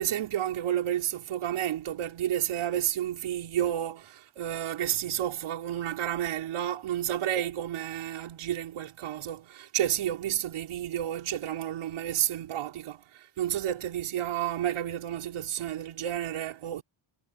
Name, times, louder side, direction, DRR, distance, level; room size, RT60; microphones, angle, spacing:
voice 1, 0.0-16.8, right 11 dB, 85° right, 5.1 m, -31 dB
cardioid pair, 90°, 48 cm